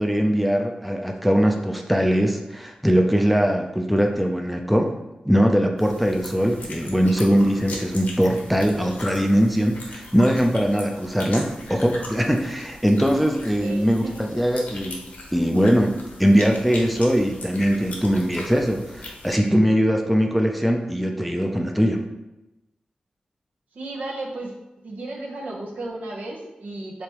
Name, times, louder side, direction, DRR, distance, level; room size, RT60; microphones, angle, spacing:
voice 1, 0.0-4.9 5.3-14.0 14.3-15.0 15.3-15.9 16.2-22.0, equal, ahead, 2 dB, 0.5 m, -21 dB
sound 1, 5.8-19.4, left 2 dB, 85° left, 0.9 m, -39 dB
voice 2, 13.6-14.3 23.7-24.6 24.8-27.0, right 2 dB, 75° right, -2 dB, 1.0 m, -34 dB
4.9 x 3.5 x 3.0 m, 0.97 s
wide cardioid pair, 90°, 3 cm